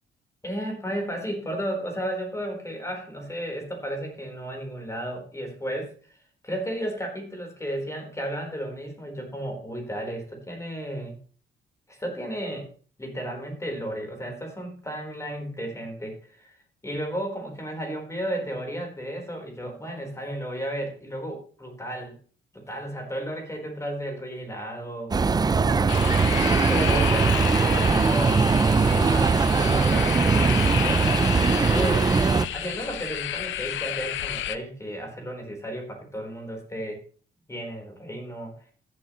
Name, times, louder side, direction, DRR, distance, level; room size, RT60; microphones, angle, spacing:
voice 1, 0.4-6.1 6.4-11.1 11.9-12.7 13.0-16.5 16.8-22.2 22.5-25.1 25.6-28.4 28.8-32.1 32.5-37.0 37.5-38.5, equal, 15° left, 1 dB, 4.1 m, -33 dB
sound 1, 25.1-32.5, right 4 dB, 20° right, 0.4 m, -21 dB
sound 2, 25.9-34.6, left 12 dB, 75° left, 0.6 m, -31 dB
15.0 x 7.7 x 3.1 m, 0.42 s
cardioid pair, 90°, 20 cm